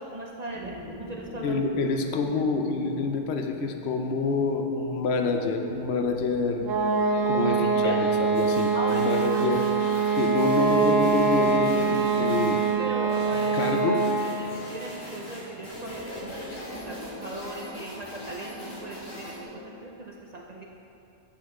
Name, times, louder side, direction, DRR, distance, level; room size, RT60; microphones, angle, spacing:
voice 1, 0.0-1.6 7.3-8.0 8.7-9.0 9.3-9.5 10.2-10.3 12.8-14.0 14.3-20.6, right 2 dB, 60° right, -2 dB, 0.4 m, -38 dB
sound 1, 0.5-19.7, left 1 dB, 15° right, 0.9 m, -43 dB
voice 2, 1.4-6.6 7.3-9.6 10.1-12.6 13.5-14.0, left 3 dB, 65° left, 4 dB, 0.8 m, -27 dB
sound 2, 6.6-14.3, right 4 dB, 85° right, 1.0 m, -24 dB
sound 3, 8.3-19.4, equal, 90° left, 2.0 m, -43 dB
8.6 x 5.5 x 3.6 m, 2.8 s
omnidirectional pair, 1.3 m